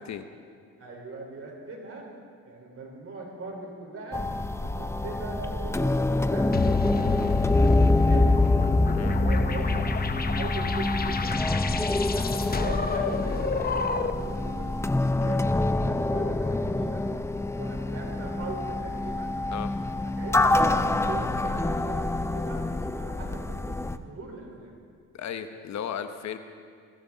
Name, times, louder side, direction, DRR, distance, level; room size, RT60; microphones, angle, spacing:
voice 1, 0.8-2.1 2.4-4.2 4.6-8.3 8.9-9.9 10.1-11.4 12.1-14.7 15.1-17.0 17.6-19.3 20.0-22.6 22.9-24.7, right 2 dB, 50° right, -1 dB, 4.6 m, -40 dB
sound 1, 4.1-24.0, left 2 dB, 10° left, 0.6 m, -26 dB
sound 2, 6.5-14.3, left 5 dB, 30° left, 0.9 m, -28 dB
voice 2, 25.1-26.4, left 8 dB, 65° left, 9 dB, 1.1 m, -35 dB
22.0 x 15.0 x 4.1 m, 2.3 s
cardioid pair, 90°, 30 cm